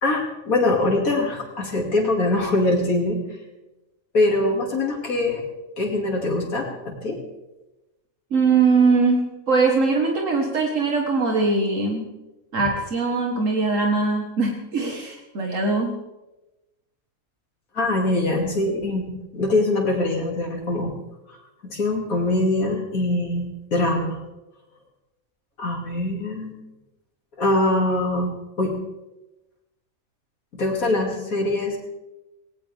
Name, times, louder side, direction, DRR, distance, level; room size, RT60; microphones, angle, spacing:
voice 1, 0.0-3.2 4.1-5.4 5.8-7.2 17.7-20.9 21.3-21.4 21.6-24.2 25.6-26.6 27.4-28.3 28.6-28.7 30.5-31.8, left 2 dB, 85° left, -1 dB, 3.2 m, -23 dB
voice 2, 8.3-12.1 12.5-16.0, right 4 dB, 65° right, 1 dB, 1.9 m, -21 dB
19.0 x 18.5 x 3.6 m, 1.0 s
omnidirectional pair, 1.4 m